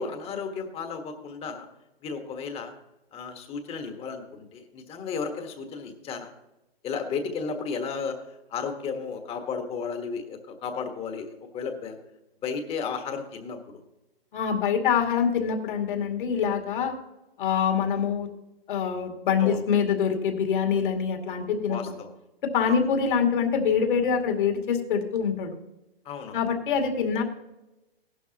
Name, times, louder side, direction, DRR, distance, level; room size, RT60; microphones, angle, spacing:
voice 1, 0.0-1.7 2.0-2.7 3.1-6.3 6.8-8.2 8.5-12.0 12.4-13.8 19.4-19.6 21.7-22.1 22.6-22.7 26.0-26.4, left 5 dB, 20° left, 6 dB, 1.5 m, -33 dB
voice 2, 14.3-17.0 17.4-18.3 18.7-21.8 22.4-25.5 26.3-27.2, left 7 dB, 55° left, 3 dB, 2.4 m, -25 dB
16.5 x 11.5 x 2.9 m, 0.94 s
hypercardioid pair, 130°, 30 cm